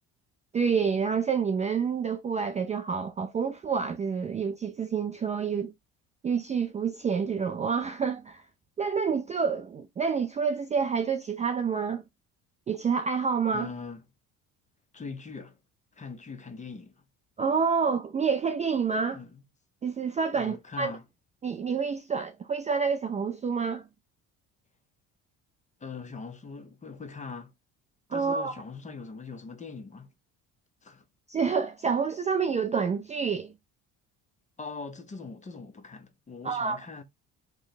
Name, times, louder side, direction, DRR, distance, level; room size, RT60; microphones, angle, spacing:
voice 1, 0.5-5.7 6.2-8.4 8.8-12.0 12.7-13.7 17.4-19.2 19.8-20.9 21.4-23.9 28.1-28.5 31.3-33.5 36.4-36.8, right 6 dB, 20° right, 0.3 m, -28 dB
voice 2, 13.5-14.0 14.9-15.6 15.9-17.0 19.1-19.4 20.3-21.0 25.8-27.5 28.1-30.1 30.8-31.0 34.6-37.0, left 4 dB, 20° left, 0.7 m, -41 dB
3.1 x 2.2 x 3.9 m
cardioid pair, 105°, 34 cm